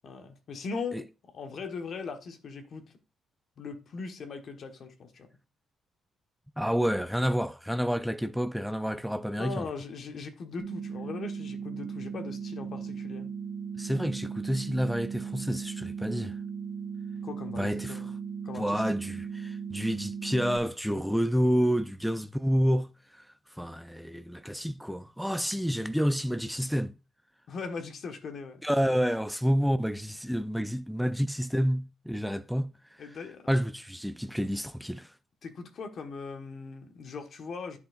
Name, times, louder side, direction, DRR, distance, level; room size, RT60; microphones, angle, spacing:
voice 1, 0.0-1.1 1.3-2.9 3.6-5.3 9.4-13.3 17.2-18.1 18.4-18.8 27.5-28.6 33.0-33.5 35.4-37.8, left 4 dB, 55° left, 1.3 m, -39 dB
voice 2, 6.6-9.7 13.8-16.4 17.6-18.0 18.5-26.9 28.6-33.2 33.5-35.1, equal, ahead, 0.4 m, -29 dB
sound 1, 10.6-20.6, right 6 dB, 80° right, 1.3 m, -37 dB
10.5 x 5.8 x 2.5 m
cardioid pair, 90°, 0 cm